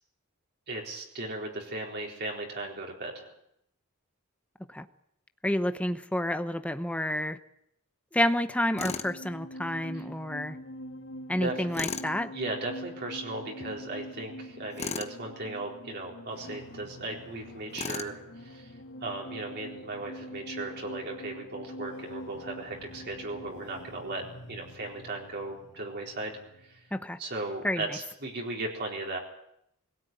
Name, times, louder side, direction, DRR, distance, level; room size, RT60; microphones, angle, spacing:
voice 1, 0.7-3.3 9.9-10.0 11.4-11.7 12.3-18.7 19.0-24.2 24.5-26.3 26.6-26.8 27.2-29.2, right 2 dB, 50° right, -1 dB, 4.2 m, -37 dB
voice 2, 5.4-7.4 8.1-10.6 11.3-12.3 26.9-27.2 27.6-27.8, left 1 dB, 5° left, 9 dB, 0.9 m, -29 dB
sound 1, 8.4-26.9, equal, 55° left, 2.2 m, -45 dB
Tools, 8.8-9.1 11.7-12.1 14.8-15.1 17.7-18.2, left 4 dB, 30° left, 1.1 m, -35 dB
22.0 x 17.0 x 9.2 m, 0.76 s
head